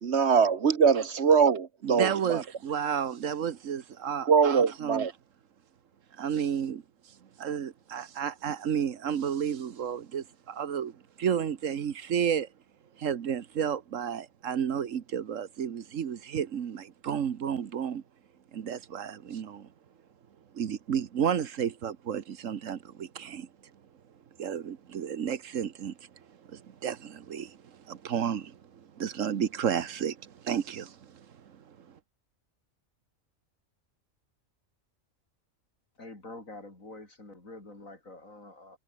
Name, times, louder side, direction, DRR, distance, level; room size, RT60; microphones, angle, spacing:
voice 1, 0.0-2.4 4.3-5.1, right 6 dB, 55° right, 1.4 m, -23 dB
voice 2, 1.8-5.1 6.1-12.5 13.0-18.0 18.5-19.7 20.5-23.7 24.4-32.0, right 8 dB, 75° right, 1.4 m, -32 dB
voice 3, 36.0-38.8, left 2 dB, 80° left, 6.1 m, -46 dB
omnidirectional pair, 1.4 m